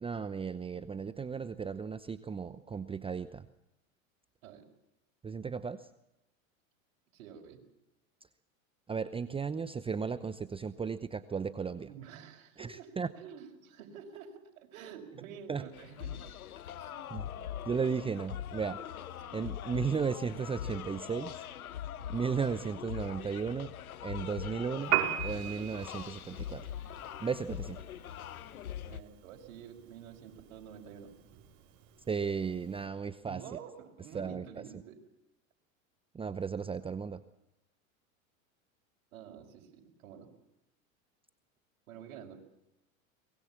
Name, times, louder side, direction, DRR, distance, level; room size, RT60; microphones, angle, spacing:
voice 1, 0.0-3.5 5.2-5.9 8.9-11.9 12.6-13.1 15.5-15.6 17.1-17.3 17.7-18.8 19.3-21.4 22.1-23.7 24.0-25.0 25.2-26.7 27.2-27.8 32.1-33.4 34.1-34.6 36.1-37.2, right 6 dB, 15° right, 13 dB, 0.8 m, -35 dB
voice 2, 7.1-7.6 11.9-16.2 16.8-17.1 19.2-19.4 28.9-31.1 33.3-35.0 39.1-40.3 41.9-42.4, right 8 dB, 70° right, 1 dB, 5.3 m, -49 dB
sound 1, 15.7-29.0, left 10 dB, 90° left, 1.2 m, -42 dB
Piano, 24.8-32.9, right 12 dB, 40° right, 4.5 m, -39 dB
23.5 x 21.0 x 7.4 m, 0.87 s
hypercardioid pair, 105°, 42 cm